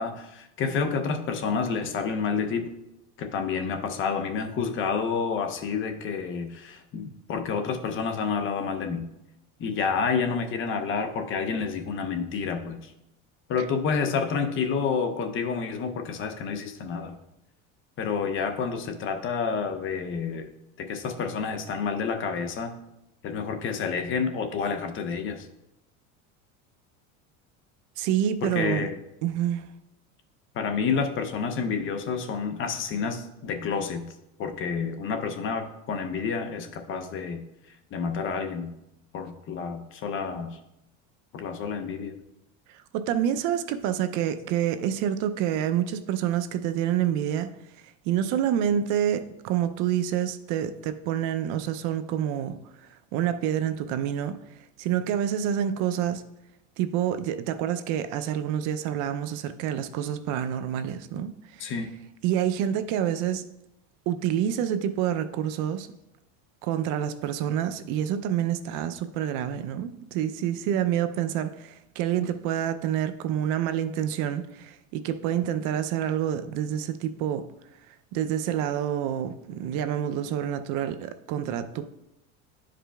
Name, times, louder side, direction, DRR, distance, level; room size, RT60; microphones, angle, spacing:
voice 1, 0.0-2.7 3.2-9.0 9.6-12.9 13.5-17.1 18.0-20.5 20.8-22.8 23.2-25.5 28.4-28.9 30.5-34.1 34.4-37.4 37.9-38.7 39.1-40.6 41.3-42.1 61.6-61.9, left 5 dB, 35° left, 0.6 m, -29 dB
voice 2, 28.0-28.9 29.2-29.7 42.7-47.5 48.0-54.4 54.8-56.2 56.8-61.7 62.2-63.5 64.1-65.9 66.6-77.5 78.1-81.9, right 10 dB, 60° right, 0.5 m, -28 dB
11.0 x 5.0 x 2.3 m
cardioid pair, 145°, 35 cm